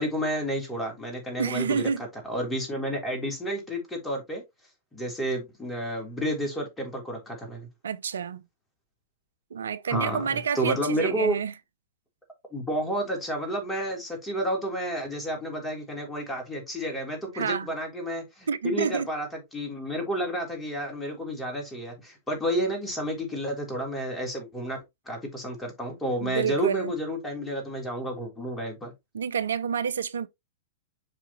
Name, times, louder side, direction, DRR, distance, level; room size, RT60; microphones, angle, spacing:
voice 1, 0.0-1.9 2.3-4.4 4.9-7.7 9.9-11.4 12.5-28.9, equal, 10° left, 3.4 m, -31 dB
voice 2, 1.4-2.0 7.8-8.4 9.5-11.5 17.3-17.7 18.5-19.1 26.2-26.9 29.1-30.3, right 6 dB, 70° right, 0.6 m, -28 dB
7.7 x 4.9 x 3.0 m
figure-of-eight pair, 100°, 0 cm